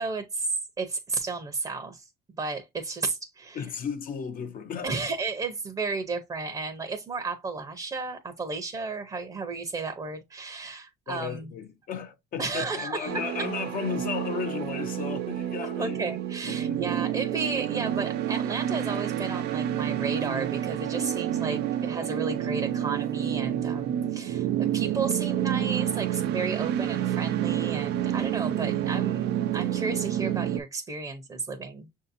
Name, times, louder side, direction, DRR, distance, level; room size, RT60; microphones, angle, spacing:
voice 1, 0.0-2.1 2.4-3.6 4.8-11.5 12.4-13.2 15.8-29.3 29.5-31.9, right 4 dB, 25° right, 0.7 m, -33 dB
voice 2, 3.5-4.9 11.1-16.0 16.5-16.8, left 7 dB, 55° left, 0.8 m, -34 dB
sound 1, 13.0-30.6, right 11 dB, 75° right, 0.5 m, -29 dB
6.3 x 2.7 x 2.5 m
cardioid pair, 110°, 17 cm